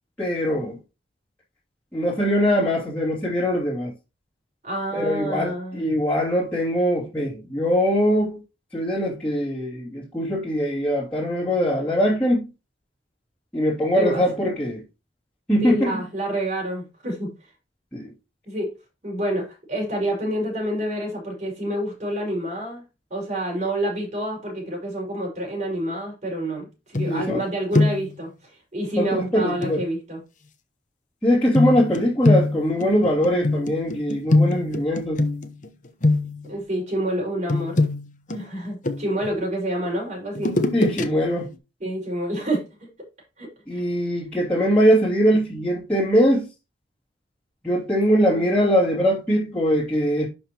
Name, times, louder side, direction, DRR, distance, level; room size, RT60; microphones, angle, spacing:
voice 1, 0.2-0.8 1.9-3.9 4.9-8.4 8.7-12.4 13.5-14.8 15.5-15.8 17.9-18.1 27.1-27.4 29.0-29.8 31.2-35.2 40.7-41.5 43.7-46.4 47.6-50.3, equal, 5° left, 2.9 m, -22 dB
voice 2, 4.6-5.8 13.9-14.2 15.6-17.3 18.5-18.7 19.0-22.8 23.1-30.2 36.5-37.8 38.3-40.6 41.8-42.9 43.4-43.8, right 1 dB, 40° right, 5.3 m, -28 dB
sound 1, 27.0-27.5 27.7-28.2 29.6-29.8 31.5-35.7 36.0-36.6 37.5-39.3 40.4-41.0 41.4-41.5, left 2 dB, 45° left, 1.1 m, -23 dB
11.5 x 5.3 x 3.0 m
head